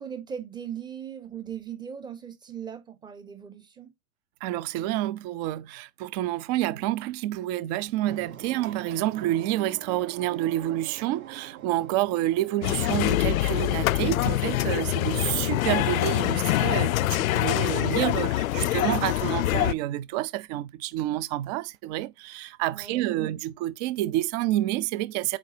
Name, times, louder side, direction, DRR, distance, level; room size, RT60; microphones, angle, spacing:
voice 1, 0.0-3.9 22.7-23.3, right 8 dB, 10° right, 1.1 m, -39 dB
voice 2, 4.4-25.4, right 15 dB, 30° right, 0.5 m, -28 dB
sound 1, 8.1-13.7, right 10 dB, 75° right, 1.4 m, -44 dB
sound 2, 12.6-19.7, left 15 dB, 80° left, 0.5 m, -25 dB
8.0 x 5.1 x 2.7 m
hypercardioid pair, 135°, 41 cm